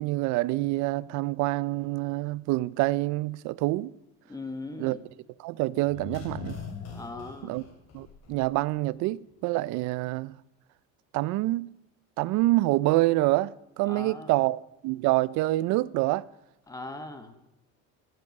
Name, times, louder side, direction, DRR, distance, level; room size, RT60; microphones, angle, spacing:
voice 1, 0.0-3.9 4.8-5.0 5.4-6.6 7.5-7.6 7.9-10.3 11.1-11.7 12.2-16.2, right 19 dB, 65° right, 0.5 m, -26 dB
voice 2, 4.3-5.0 6.9-7.6 13.9-14.4 16.7-17.4, left 2 dB, 10° left, 1.2 m, -39 dB
sound 1, 5.8-8.7 9.0-9.1, left 6 dB, 50° left, 3.0 m, -41 dB
12.0 x 11.0 x 6.5 m
cardioid pair, 165°, 32 cm